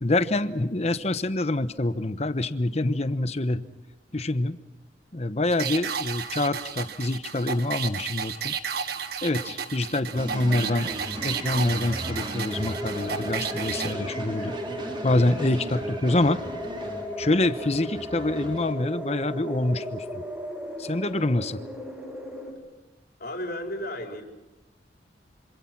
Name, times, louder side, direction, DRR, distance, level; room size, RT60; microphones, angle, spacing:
voice 1, 0.0-3.7 4.1-4.6 5.1-8.5 9.2-10.9 11.2-14.6 15.0-16.4 17.2-20.2 20.8-21.6, left 2 dB, 35° left, 12 dB, 1.0 m, -26 dB
sound 1, 5.5-13.9, right 7 dB, 60° right, 1.5 m, -33 dB
sound 2, 10.2-18.7, right 1 dB, 30° right, 4.2 m, -37 dB
sound 3, 12.5-22.5, equal, 10° right, 6.2 m, -35 dB
voice 2, 23.2-24.2, left 1 dB, 55° left, 2 dB, 4.5 m, -33 dB
26.5 x 26.5 x 6.0 m, 1.1 s
head